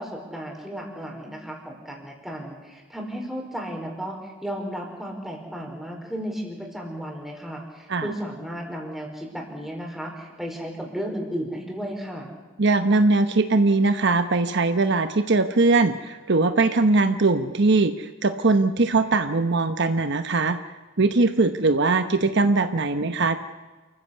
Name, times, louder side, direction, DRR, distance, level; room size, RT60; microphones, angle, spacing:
voice 1, 0.0-12.3, equal, ahead, 0 dB, 4.8 m, -34 dB
voice 2, 12.6-20.6 21.0-23.4, right 3 dB, 60° right, 9 dB, 1.0 m, -21 dB
28.0 x 15.0 x 8.3 m, 1.3 s
head